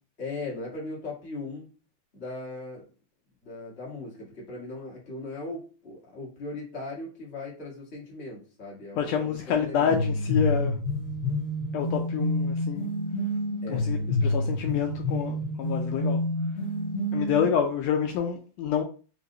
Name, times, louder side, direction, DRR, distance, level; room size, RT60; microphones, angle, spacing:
voice 1, 0.2-1.7 2.1-2.8 3.4-10.0 13.6-13.8, left 2 dB, 30° left, -5 dB, 1.3 m, -38 dB
voice 2, 9.0-10.8 11.7-12.9 13.7-16.2 17.1-18.8, left 7 dB, 80° left, 3 dB, 1.6 m, -28 dB
sound 1, 9.9-17.5, left 1 dB, 60° left, 1.7 m, -28 dB
5.1 x 2.7 x 2.6 m, 0.37 s
omnidirectional pair, 3.3 m